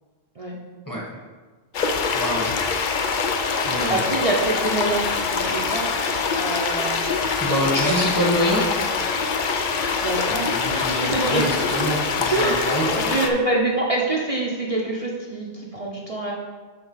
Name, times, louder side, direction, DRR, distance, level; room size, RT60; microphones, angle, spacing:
sound 1, 1.7-13.3, left 5 dB, 55° left, 0.7 m, -24 dB
voice 1, 2.1-2.5 3.6-4.0 7.4-8.6 10.5-13.0, equal, 20° left, -3 dB, 1.4 m, -25 dB
voice 2, 3.9-5.9 6.4-7.0 7.6-8.0 10.0-11.5 12.3-16.3, right 2 dB, 35° right, -3 dB, 0.8 m, -25 dB
7.0 x 4.0 x 5.6 m, 1.4 s
omnidirectional pair, 1.1 m